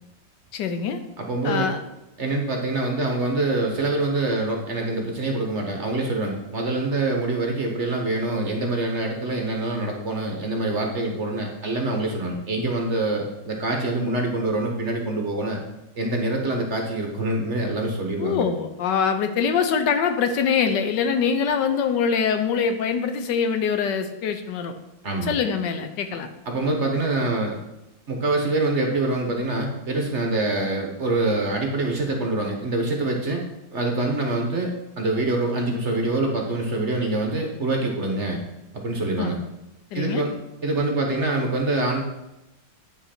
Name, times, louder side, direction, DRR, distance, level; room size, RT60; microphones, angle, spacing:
voice 1, 0.5-1.0 1.4-1.8 18.2-24.7 25.2-26.3 39.2-39.4 39.9-40.2, left 6 dB, 75° left, 8 dB, 1.3 m, -24 dB
voice 2, 1.2-1.7 2.2-15.6 15.9-18.4 25.0-25.4 26.5-27.6 28.1-33.4 33.7-38.4 38.8-39.4 39.9-40.4 40.6-42.0, right 2 dB, 45° right, 2 dB, 1.1 m, -25 dB
9.5 x 5.6 x 4.3 m, 0.95 s
omnidirectional pair, 2.0 m